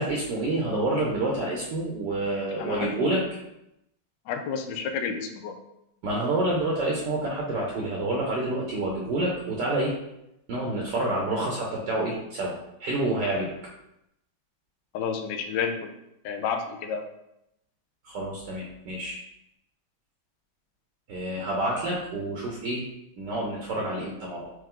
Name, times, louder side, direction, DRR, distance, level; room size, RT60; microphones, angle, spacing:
voice 1, 0.0-3.2 6.0-9.9 10.5-13.5 18.0-19.2 21.1-22.8 23.2-24.5, right 2 dB, 65° right, -2 dB, 1.3 m, -28 dB
voice 2, 2.6-3.1 4.3-5.5 14.9-15.9 16.2-17.0, left 6 dB, 75° left, 5 dB, 1.1 m, -30 dB
4.5 x 3.2 x 3.7 m, 0.83 s
omnidirectional pair, 2.2 m